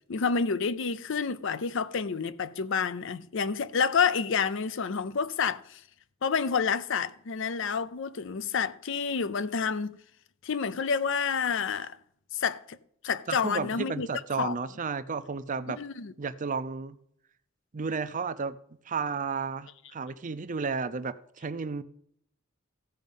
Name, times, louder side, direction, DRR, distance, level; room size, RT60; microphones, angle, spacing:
voice 1, 0.1-5.8 6.2-10.0 10.4-12.0 12.3-12.8 13.0-14.1 14.4-14.5 15.8-16.1, left 6 dB, 60° left, 0.5 m, -29 dB
voice 2, 13.3-15.8 16.2-17.0 17.7-18.6 18.9-21.8, right 5 dB, 40° right, 0.5 m, -32 dB
15.0 x 5.2 x 5.3 m
head